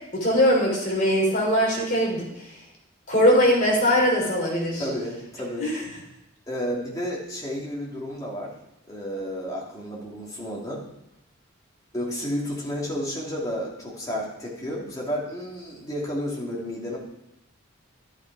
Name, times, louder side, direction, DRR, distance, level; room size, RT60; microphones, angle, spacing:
voice 1, 0.1-2.2 3.1-4.8 5.6-5.8, equal, 40° left, -1 dB, 3.4 m, -21 dB
voice 2, 4.8-5.7 6.5-8.5 8.9-10.9 11.9-17.0, equal, 15° left, -4 dB, 2.8 m, -31 dB
11.5 x 10.5 x 4.8 m, 0.88 s
head